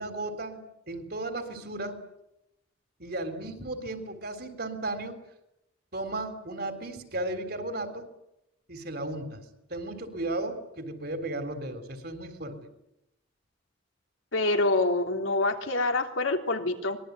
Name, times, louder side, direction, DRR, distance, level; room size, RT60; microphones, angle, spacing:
voice 1, 0.0-2.0 3.0-5.2 5.9-8.1 8.7-9.4 9.7-12.6, right 2 dB, 50° right, 8 dB, 3.8 m, -35 dB
voice 2, 14.3-17.0, left 2 dB, 90° left, 4 dB, 3.3 m, -26 dB
24.5 x 21.5 x 9.6 m, 0.87 s
head